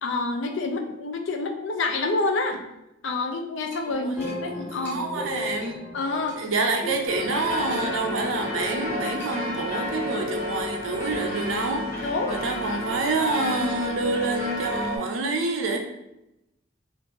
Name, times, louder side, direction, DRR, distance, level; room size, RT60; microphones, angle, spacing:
voice 1, 0.0-2.6 3.0-5.0 5.9-6.4 12.0-12.4, left 3 dB, 75° left, 5 dB, 0.5 m, -27 dB
sound 1, 3.7-3.8 4.2-4.4 4.8-5.0 5.6-5.8 6.3-6.4 7.7-8.1 9.2-9.5, left 1 dB, 10° left, 0.9 m, -45 dB
voice 2, 3.9-5.8 6.4-15.8, right 3 dB, 90° right, 4 dB, 0.5 m, -28 dB
sound 2, 4.1-9.2, left 2 dB, 5° right, 0.4 m, -38 dB
sound 3, 7.1-15.0, left 1 dB, 45° left, 1.3 m, -31 dB
3.1 x 2.4 x 3.4 m, 0.89 s
head